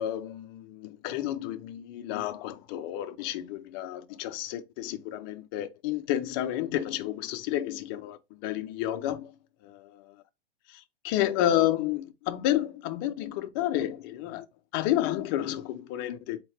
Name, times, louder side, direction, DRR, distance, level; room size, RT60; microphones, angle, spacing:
voice 1, 0.0-9.3 10.7-14.5 14.7-16.4, left 12 dB, 25° left, 0.4 m, -30 dB
4.1 x 2.8 x 3.2 m
hypercardioid pair, 150°, 31 cm